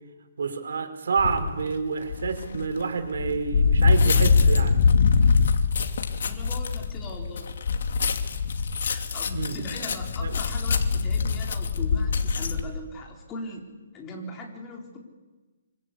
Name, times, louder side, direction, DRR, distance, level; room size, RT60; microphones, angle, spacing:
voice 1, 0.4-4.8 9.3-9.6 10.2-10.4, right 5 dB, 75° right, 9 dB, 4.9 m, -28 dB
sound 1, 1.2-1.5 2.1-12.6, left 5 dB, 65° left, 2.7 m, -23 dB
voice 2, 6.2-7.6 8.8-13.7 13.9-15.0, left 1 dB, 15° left, 0 dB, 4.1 m, -39 dB
26.0 x 25.0 x 8.4 m, 1.2 s
hypercardioid pair, 165°, 0 cm